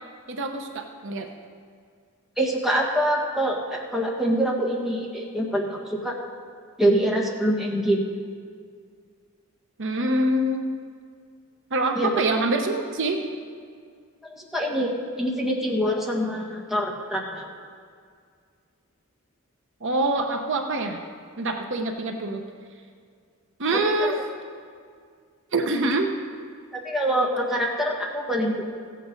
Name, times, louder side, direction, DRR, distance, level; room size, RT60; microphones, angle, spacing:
voice 1, 0.3-1.3 9.8-10.7 11.7-13.2 19.8-21.0 21.4-22.4 23.6-24.2 25.5-26.1, right 2 dB, 60° right, 4 dB, 0.9 m, -25 dB
voice 2, 2.4-6.1 6.8-8.0 11.9-12.1 14.4-14.9 15.2-17.5 24.0-24.2 26.7-28.6, right 1 dB, ahead, -2 dB, 1.6 m, -25 dB
15.5 x 8.5 x 5.3 m, 2.1 s
head